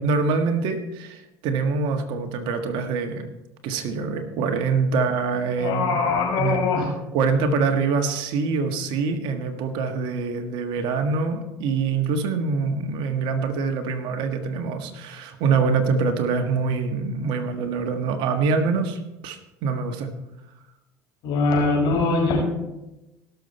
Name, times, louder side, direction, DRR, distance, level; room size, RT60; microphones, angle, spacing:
voice 1, 0.0-3.3 3.6-6.0 6.4-6.6 7.1-20.1, right 4 dB, 65° right, 6 dB, 1.6 m, -25 dB
voice 2, 5.6-6.9 21.2-22.4, left 3 dB, 65° left, -1 dB, 5.3 m, -22 dB
18.0 x 7.0 x 4.3 m, 0.96 s
supercardioid pair, 85°, 9 cm